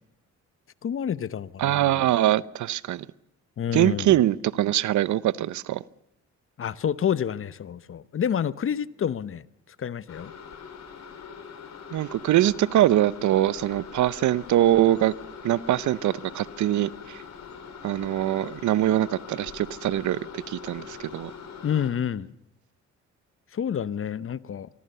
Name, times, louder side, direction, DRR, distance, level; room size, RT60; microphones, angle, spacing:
voice 1, 0.8-1.9 3.6-4.1 6.6-9.4 9.8-10.3 21.6-22.3 23.5-24.7, left 8 dB, 45° left, 0.9 m, -28 dB
voice 2, 1.6-3.1 3.7-5.8 11.9-15.1 15.4-17.2 17.8-21.3, right 13 dB, 75° right, 0.8 m, -23 dB
sound 1, 10.1-21.9, left 6 dB, 60° left, 5.4 m, -42 dB
24.0 x 23.5 x 6.8 m
cardioid pair, 90°, 30 cm